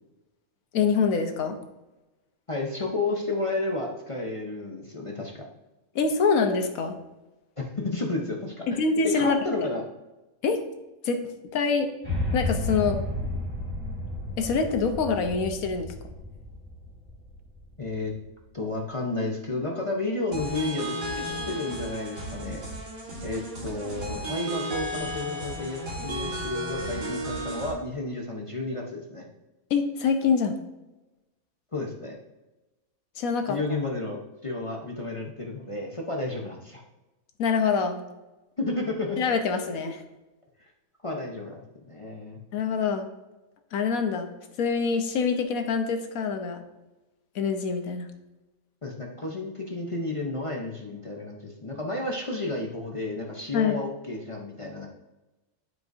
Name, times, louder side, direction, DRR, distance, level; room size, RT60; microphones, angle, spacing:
voice 1, 0.7-1.6 5.9-7.0 8.7-9.4 10.4-10.6 11.0-11.2 11.5-11.9 12.3-13.0 14.4-15.9 29.7-30.6 33.2-33.6 37.4-38.0 39.2-40.0 42.5-43.1 43.7-44.3 44.6-46.6 47.3-48.1 53.5-53.8, left 5 dB, 75° left, 6 dB, 1.2 m, -25 dB
voice 2, 2.5-5.5 7.6-9.8 17.8-18.1 18.5-22.6 23.2-29.3 31.7-32.2 33.5-36.8 38.6-39.2 39.8-39.9 40.6-40.7 41.0-42.4 48.8-54.9, left 2 dB, 30° left, -1 dB, 0.6 m, -32 dB
sound 1, 12.0-18.2, left 1 dB, 5° right, 1.8 m, -32 dB
sound 2, 20.3-27.7, right 1 dB, 65° right, 2.0 m, -34 dB
12.0 x 4.7 x 2.6 m, 1.0 s
omnidirectional pair, 1.6 m